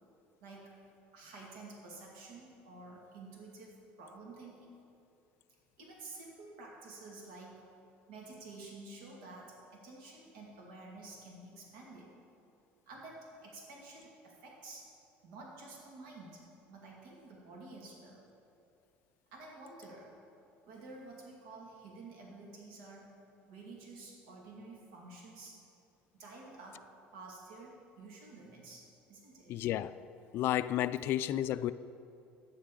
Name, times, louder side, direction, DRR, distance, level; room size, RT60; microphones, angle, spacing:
voice 1, 0.4-0.7 1.1-4.7 5.8-7.6 8.1-12.1 12.9-14.9 15.2-16.4 16.7-18.2 19.3-20.1 20.7-23.1 23.5-25.6 26.1-26.8 27.1-29.6, right 3 dB, 85° right, -2 dB, 2.1 m, -50 dB
voice 2, 29.5-30.0 30.3-31.7, left 12 dB, 60° left, 14 dB, 0.3 m, -32 dB
13.0 x 9.0 x 3.8 m, 2.6 s
cardioid pair, 120°, 4 cm